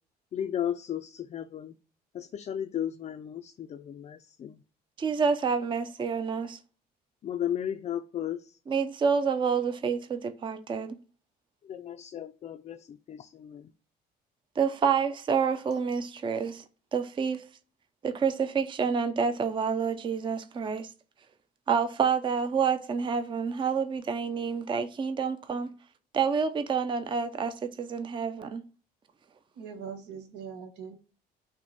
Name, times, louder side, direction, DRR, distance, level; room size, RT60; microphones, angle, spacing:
voice 1, 0.3-1.7 2.1-4.6 7.2-8.5 11.6-13.7, left 10 dB, 40° left, 0.4 m, -35 dB
voice 2, 5.0-6.6 8.7-11.0 14.6-16.6 16.9-17.5 18.0-20.9 21.7-25.7 26.1-28.6, right 6 dB, 30° right, 0.5 m, -28 dB
voice 3, 29.6-31.0, right 6 dB, 85° right, 1.0 m, -41 dB
6.0 x 2.2 x 4.0 m
cardioid pair, 110°, 17 cm